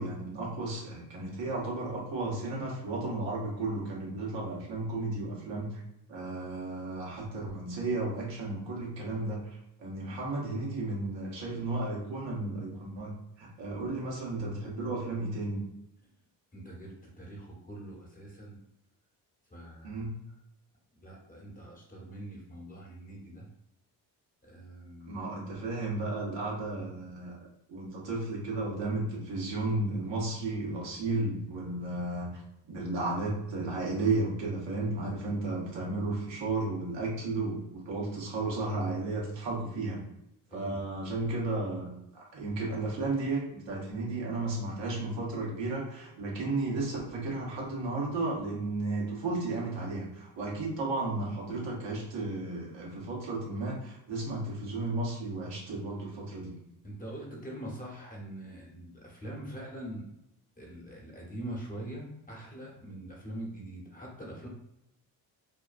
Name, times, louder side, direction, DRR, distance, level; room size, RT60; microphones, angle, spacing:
voice 1, 0.0-5.8 6.1-15.6 19.8-20.1 25.1-27.4 27.7-32.3 32.6-40.0 40.5-56.6, right 2 dB, 70° right, -4 dB, 1.2 m, -33 dB
voice 2, 16.5-18.6 19.5-20.1 21.0-23.5 24.4-25.2 40.5-40.8 56.8-60.1 60.6-64.5, right 1 dB, 20° left, -3 dB, 1.0 m, -43 dB
2.7 x 2.2 x 2.5 m, 0.84 s
supercardioid pair, 60°, 45 cm